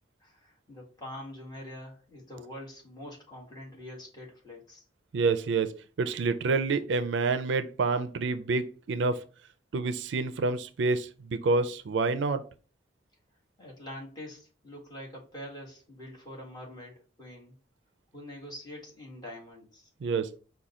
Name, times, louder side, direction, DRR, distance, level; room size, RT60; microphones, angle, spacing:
voice 1, 0.2-4.8 13.6-17.5 18.1-19.9, left 1 dB, 25° left, 1.6 m, -45 dB
voice 2, 5.1-9.2 9.7-12.4 20.0-20.3, right 4 dB, 70° right, 0.4 m, -28 dB
4.9 x 2.3 x 4.1 m
head